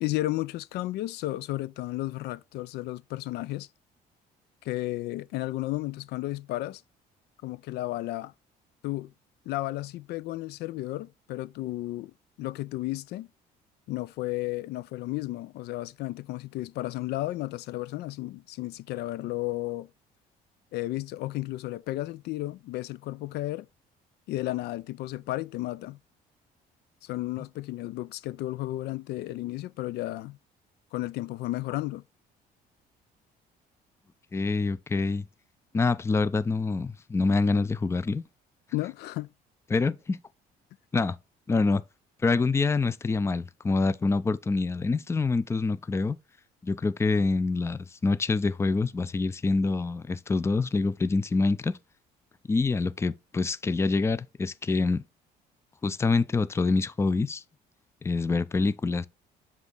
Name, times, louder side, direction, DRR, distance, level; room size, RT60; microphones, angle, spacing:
voice 1, 0.0-3.7 4.6-6.8 7.4-8.3 8.8-9.1 9.5-12.1 12.4-13.3 13.9-19.9 20.7-23.7 24.3-26.0 27.0-30.4 30.9-32.0 38.7-39.3, left 17 dB, 75° left, 0.4 m, -33 dB
voice 2, 34.3-35.3 35.7-38.2 39.7-40.2 40.9-41.2 41.5-41.8 42.2-46.2 46.6-51.7 52.5-55.0 55.8-57.4 58.0-59.1, left 3 dB, 15° left, 0.4 m, -26 dB
7.2 x 3.6 x 3.9 m
cardioid pair, 110°, 17 cm